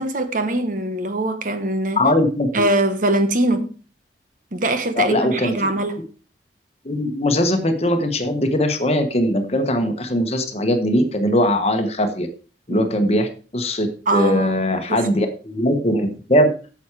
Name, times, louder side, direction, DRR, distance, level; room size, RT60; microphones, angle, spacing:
voice 1, 0.0-2.0 2.5-3.7 4.5-6.0 12.7-12.8 14.1-14.6 14.9-15.3, right 1 dB, 45° right, 1.1 m, -22 dB
voice 2, 2.0-2.7 5.0-5.5 6.8-12.3 12.7-16.5, left 1 dB, 35° left, 1.2 m, -20 dB
9.4 x 7.1 x 4.8 m
head